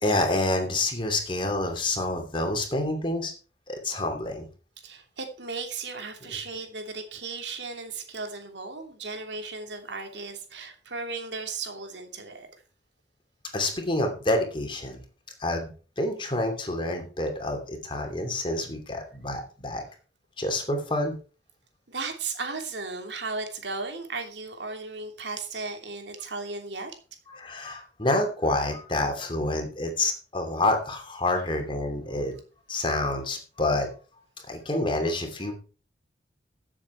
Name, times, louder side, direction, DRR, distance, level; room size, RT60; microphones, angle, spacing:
voice 1, 0.0-3.3 3.7-4.5 13.5-15.0 15.4-19.8 20.4-21.1 27.3-32.3 32.7-33.9 34.5-35.5, left 2 dB, 30° left, 4 dB, 2.9 m, -28 dB
voice 2, 4.8-12.5 21.9-26.9, right 4 dB, 80° right, 5 dB, 3.0 m, -35 dB
14.5 x 7.6 x 4.5 m, 0.37 s
head